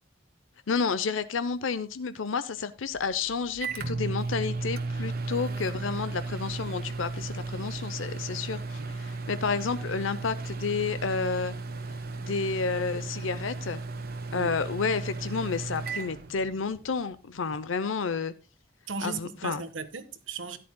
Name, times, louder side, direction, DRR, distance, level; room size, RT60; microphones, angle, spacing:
voice 1, 0.7-11.5 12.2-13.8 14.3-18.3 19.0-19.7, left 5 dB, 90° left, 0.7 m, -30 dB
Microwave oven, 2.9-16.9, right 3 dB, 50° right, 1.3 m, -35 dB
voice 2, 18.9-20.6, right 4 dB, 85° right, 1.3 m, -37 dB
13.0 x 10.5 x 2.2 m
head